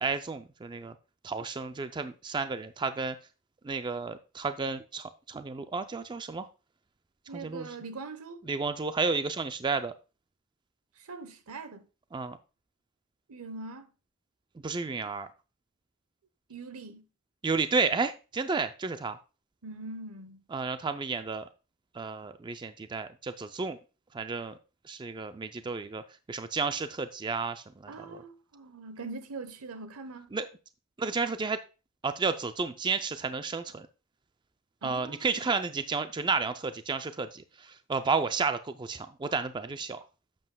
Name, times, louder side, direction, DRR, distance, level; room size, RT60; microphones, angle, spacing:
voice 1, 0.0-0.9 1.2-3.2 3.6-6.5 7.3-7.7 8.5-9.9 12.1-12.4 14.6-15.3 17.4-19.2 20.5-21.4 21.9-23.8 24.1-24.6 24.9-26.0 26.3-28.2 30.3-30.5 31.0-31.6 32.0-33.9 34.8-40.0, right 4 dB, 20° right, 0.3 m, -32 dB
voice 2, 7.3-8.4 11.0-11.8 13.3-13.9 16.5-17.0 19.6-20.4 27.9-30.3 34.8-35.5, right 3 dB, 75° right, 0.9 m, -42 dB
11.0 x 7.7 x 2.2 m
head